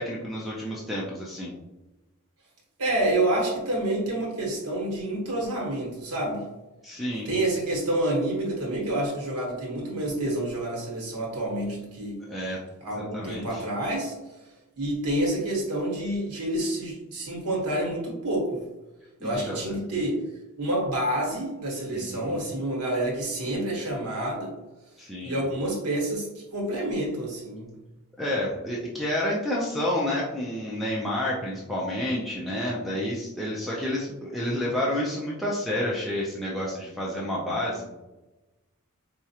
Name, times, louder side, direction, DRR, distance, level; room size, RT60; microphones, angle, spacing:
voice 1, 0.0-1.5 6.8-7.3 12.3-12.6 12.9-13.6 19.2-19.8 21.9-22.4 25.0-25.4 28.2-37.9, left 1 dB, ahead, -5 dB, 0.4 m, -30 dB
voice 2, 2.8-6.4 7.2-12.2 12.8-14.1 14.8-18.6 19.2-20.2 20.6-24.5 25.2-27.7, right 1 dB, 90° right, -2 dB, 1.2 m, -28 dB
4.4 x 2.4 x 2.8 m, 1.0 s
head